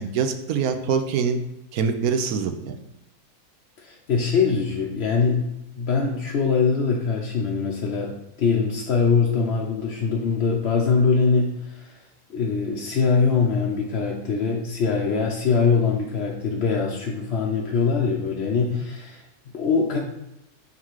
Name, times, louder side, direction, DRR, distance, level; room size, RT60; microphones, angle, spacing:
voice 1, 0.0-1.4 1.7-2.8 18.7-18.8, right 6 dB, 75° right, 8 dB, 1.1 m, -24 dB
voice 2, 3.8-5.4 5.8-12.0 12.3-20.0, left 5 dB, 55° left, -2 dB, 0.8 m, -23 dB
5.5 x 3.9 x 4.7 m, 0.87 s
omnidirectional pair, 1.6 m